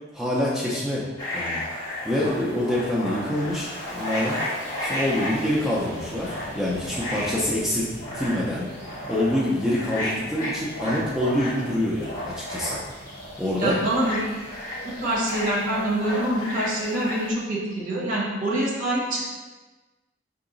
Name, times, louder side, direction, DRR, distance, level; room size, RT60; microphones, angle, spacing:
voice 1, 0.1-1.0 1.3-1.6 2.0-4.4 4.8-7.9 8.1-8.7 9.1-12.8 13.4-13.8, left 1 dB, ahead, -6 dB, 0.5 m, -26 dB
sound 1, 1.2-17.3, left 1 dB, 20° left, 1.2 m, -33 dB
Fixed-wing aircraft airplane, 1.3-17.7, equal, 40° left, 1.0 m, -43 dB
voice 2, 13.6-14.3 14.8-19.2, right 1 dB, 45° right, -4 dB, 1.3 m, -25 dB
4.6 x 2.9 x 3.9 m, 1.3 s
head